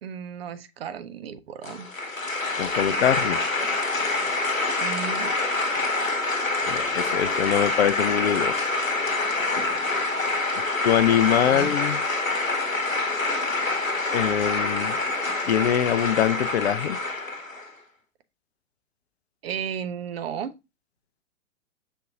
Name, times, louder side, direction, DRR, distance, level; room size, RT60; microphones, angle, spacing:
voice 1, 0.0-1.9 4.8-5.3 11.5-11.7 19.4-20.5, right 8 dB, 50° right, 0.5 m, -34 dB
sound 1, 1.6-17.7, left 2 dB, 90° left, 1.0 m, -26 dB
voice 2, 2.6-3.4 6.7-8.6 10.8-12.0 14.1-15.0 15.5-17.0, left 10 dB, 55° left, 0.5 m, -23 dB
6.0 x 2.4 x 2.7 m
figure-of-eight pair, 110°, 39 cm